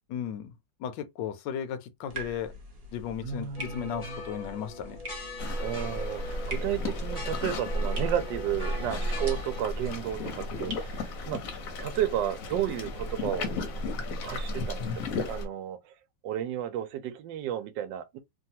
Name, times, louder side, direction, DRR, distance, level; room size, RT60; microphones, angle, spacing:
voice 1, 0.1-0.5 0.8-2.6 2.9-5.0, left 8 dB, 75° left, 1.2 m, -35 dB
sound 1, 2.1-12.0, equal, 45° right, 0.8 m, -45 dB
voice 2, 3.2-4.2 5.6-11.4 11.8-13.5 14.2-14.9 15.3-15.9 16.2-18.2, right 10 dB, 80° right, 1.2 m, -32 dB
sound 2, 3.6-9.6, left 1 dB, 30° left, 0.6 m, -41 dB
sound 3, 5.4-15.5, left 1 dB, 60° left, 1.0 m, -33 dB
3.2 x 2.3 x 2.7 m
omnidirectional pair, 2.0 m